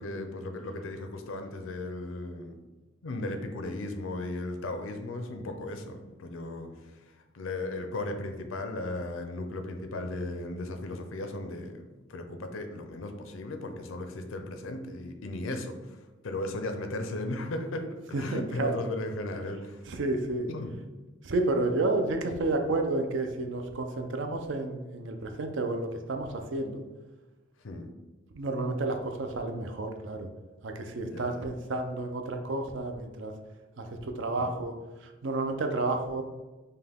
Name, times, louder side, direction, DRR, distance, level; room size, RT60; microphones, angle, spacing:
voice 1, 0.0-2.6 3.0-11.8 12.1-19.9 20.5-20.8 27.6-27.9 31.0-31.5 34.4-34.6, left 2 dB, 80° left, 6 dB, 0.5 m, -36 dB
voice 2, 18.1-18.8 19.9-20.5 21.2-26.8 28.3-30.3 30.6-33.3 33.8-34.7 35.0-36.2, right 2 dB, 65° right, 5 dB, 0.5 m, -31 dB
5.4 x 2.2 x 3.5 m, 1.1 s
head